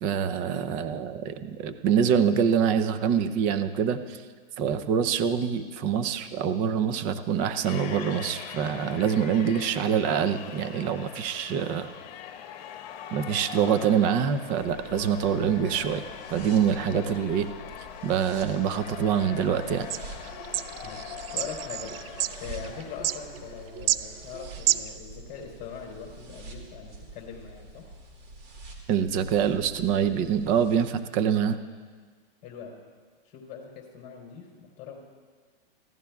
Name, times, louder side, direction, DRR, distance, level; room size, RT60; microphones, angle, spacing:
voice 1, 0.0-4.2 4.6-11.9 13.1-16.0 16.3-17.5 18.0-19.9 28.9-31.6, right 8 dB, 25° right, 10 dB, 0.6 m, -25 dB
sound 1, 7.6-23.9, left 9 dB, 50° left, 1.4 m, -42 dB
sound 2, 14.6-30.8, right 2 dB, 45° right, 2.4 m, -47 dB
sound 3, 19.9-25.0, right 13 dB, 70° right, 0.5 m, -30 dB
voice 2, 21.3-21.9 22.4-27.9 32.4-32.8 33.2-35.0, left 7 dB, 25° left, -2 dB, 3.6 m, -41 dB
23.0 x 15.5 x 2.4 m, 1.5 s
hypercardioid pair, 150°, 30 cm